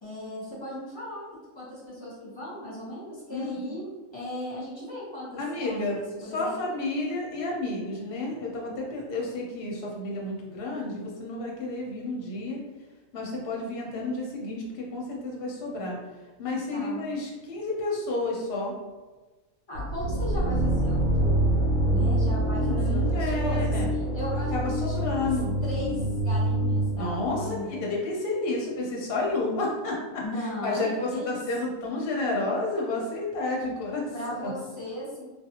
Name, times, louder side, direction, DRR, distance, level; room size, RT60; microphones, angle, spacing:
voice 1, 0.0-1.3 1.5-6.6 16.7-17.0 19.7-24.5 24.9-25.3 25.6-27.9 30.2-31.4 34.1-35.2, left 1 dB, 20° left, -8 dB, 1.0 m, -37 dB
voice 2, 3.3-3.7 5.4-12.6 13.1-16.0 16.4-18.7 22.6-23.9 24.5-25.5 26.9-30.2 30.6-34.1 34.4-34.5, left 2 dB, 55° left, -2 dB, 0.8 m, -31 dB
sound 1, 19.7-27.6, right 1 dB, 90° right, 1.0 m, -26 dB
2.5 x 2.3 x 2.8 m, 1.2 s
omnidirectional pair, 1.4 m